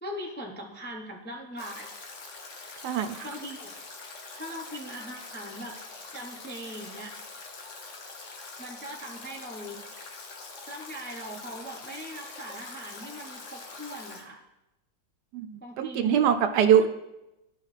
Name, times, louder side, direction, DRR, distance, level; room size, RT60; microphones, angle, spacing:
voice 1, 0.0-1.9 3.2-3.8 4.3-5.8 6.1-7.1 8.6-10.2 10.7-14.4 15.6-16.3, equal, 10° left, -1 dB, 0.5 m, -40 dB
Stream / Drip / Trickle dribble, 1.6-14.2, left 3 dB, 50° left, 1.2 m, -44 dB
voice 2, 2.8-3.3 15.3-16.9, right 9 dB, 80° right, 8 dB, 1.2 m, -23 dB
12.5 x 5.5 x 3.2 m, 0.94 s
omnidirectional pair, 1.8 m